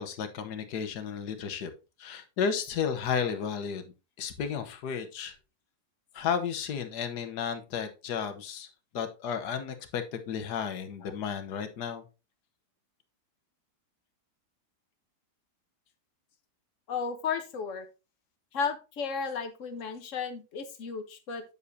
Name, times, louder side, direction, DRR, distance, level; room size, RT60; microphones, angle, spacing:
voice 1, 0.0-1.7 2.0-5.3 6.1-8.7 8.9-12.0, left 7 dB, 75° left, 8 dB, 1.6 m, -33 dB
voice 2, 16.9-17.9 18.5-21.4, left 5 dB, 50° left, 7 dB, 1.3 m, -34 dB
8.2 x 7.2 x 2.7 m, 0.30 s
omnidirectional pair, 1.8 m